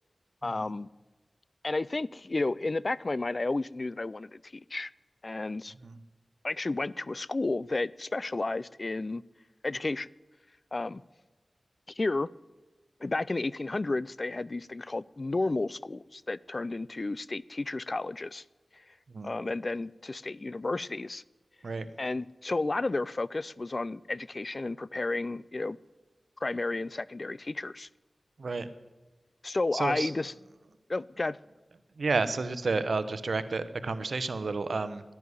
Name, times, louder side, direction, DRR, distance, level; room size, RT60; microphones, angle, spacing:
voice 1, 0.4-0.9 1.6-4.9 5.2-5.7 6.4-9.2 9.6-10.1 10.7-11.0 11.9-12.3 13.0-18.4 18.7-18.8 19.2-21.2 22.0-25.8 26.4-27.9 29.4-30.3 30.9-31.4, left 2 dB, 50° left, 21 dB, 0.4 m, -32 dB
voice 2, 29.7-30.1 32.0-35.0, right 3 dB, 80° right, 12 dB, 0.9 m, -31 dB
11.5 x 10.5 x 9.8 m, 1.2 s
wide cardioid pair, 50°, 0 cm